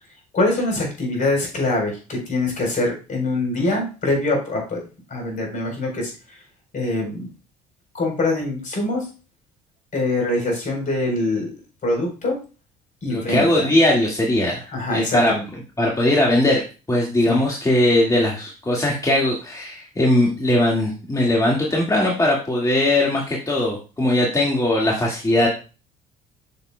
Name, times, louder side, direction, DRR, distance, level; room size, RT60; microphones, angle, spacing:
voice 1, 0.3-4.8 5.1-6.4 6.7-7.3 7.9-9.1 9.9-11.5 11.8-12.4 13.0-13.8 14.7-15.4 17.3-17.4, left 2 dB, 45° left, 1 dB, 4.1 m, -24 dB
voice 2, 13.1-15.3 15.8-25.5, left 1 dB, 20° left, -2 dB, 2.0 m, -20 dB
6.9 x 6.8 x 2.3 m, 0.32 s
hypercardioid pair, 65°, 19 cm